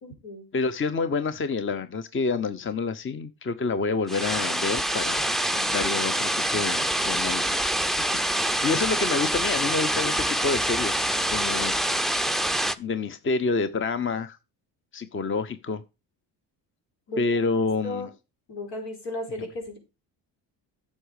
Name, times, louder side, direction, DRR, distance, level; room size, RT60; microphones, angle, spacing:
voice 1, 0.0-0.4 17.1-17.2 17.8-18.1 18.5-19.8, left 1 dB, 80° left, 4.8 m, -34 dB
voice 2, 0.5-7.7 8.3-11.7 12.8-14.4 14.9-15.8 17.2-18.1 19.4-19.5, left 4 dB, 30° left, 0.8 m, -28 dB
sound 1, 4.1-12.7, right 1 dB, ahead, 0.5 m, -26 dB
10.0 x 6.5 x 5.0 m
supercardioid pair, 80°, 42 cm